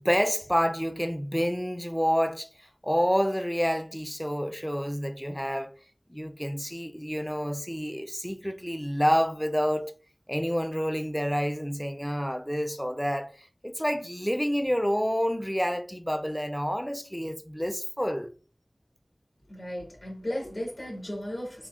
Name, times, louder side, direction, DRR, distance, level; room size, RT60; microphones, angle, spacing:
voice 1, 0.0-2.5 2.8-5.7 6.1-9.9 10.3-18.3, equal, 5° left, 0.3 m, -28 dB
voice 2, 19.5-21.7, left 1 dB, 70° left, 1.2 m, -35 dB
3.5 x 2.1 x 2.3 m
wide cardioid pair, 50°, 0 cm